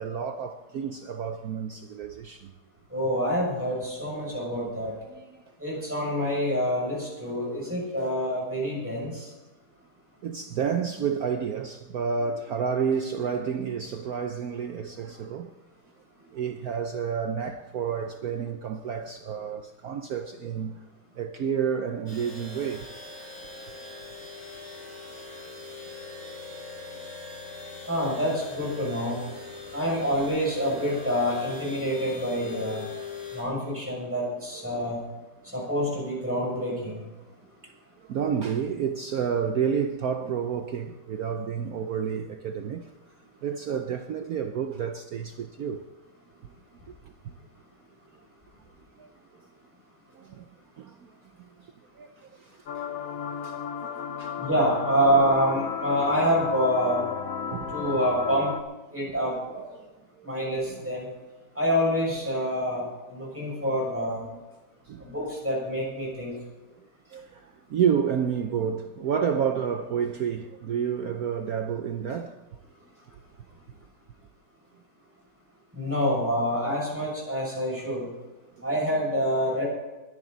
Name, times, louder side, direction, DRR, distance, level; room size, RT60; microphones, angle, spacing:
voice 1, 0.0-2.5 5.1-5.4 7.7-7.8 8.0-8.1 10.2-15.5 16.3-20.8 21.2-22.9 34.6-34.7 37.6-42.9 43.4-45.9 47.2-47.3 49.0-49.1 50.1-50.4 50.8-51.1 52.0-52.8 53.4-54.5 57.5-58.0 59.0-59.1 59.7-59.9 60.2-60.3 60.7-60.9 63.5-63.6 64.2-64.4 64.9-65.1 67.1-72.4 78.6-78.7, right 7 dB, 80° right, 0.8 m, -30 dB
voice 2, 2.9-4.9 5.6-9.3 27.8-29.2 29.7-32.9 33.3-35.0 35.5-37.0 54.4-57.1 57.7-58.5 58.9-59.6 60.2-61.1 61.5-64.2 65.0-66.3 75.7-78.1 78.6-79.7, equal, 5° right, 6.1 m, -27 dB
sound 1, 22.1-33.4, left 4 dB, 15° left, 5.5 m, -41 dB
sound 2, 52.7-58.6, left 7 dB, 65° left, 0.8 m, -33 dB
21.5 x 10.5 x 4.0 m
omnidirectional pair, 2.4 m